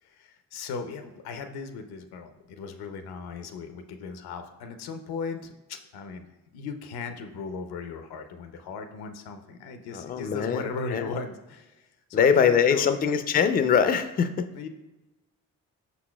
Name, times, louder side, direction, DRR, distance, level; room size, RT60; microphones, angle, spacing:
voice 1, 0.0-6.3 6.5-12.9 14.5-14.7, left 5 dB, 80° left, 8 dB, 0.6 m, -37 dB
voice 2, 9.9-10.6 10.9-11.0 12.1-14.5, left 7 dB, 25° left, 10 dB, 0.3 m, -22 dB
5.6 x 4.0 x 2.2 m, 1.1 s
supercardioid pair, 50°, 38 cm